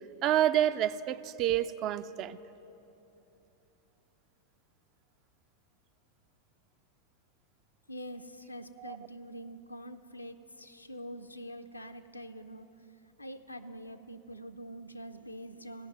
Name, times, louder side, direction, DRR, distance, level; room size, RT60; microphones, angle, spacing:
voice 1, 0.2-2.4 8.8-9.0, right 11 dB, 35° right, 15 dB, 0.3 m, -28 dB
voice 2, 7.9-12.7 13.2-15.9, equal, 85° left, 8 dB, 0.5 m, -45 dB
15.5 x 5.9 x 9.1 m, 3.0 s
figure-of-eight pair, 90°, 0 cm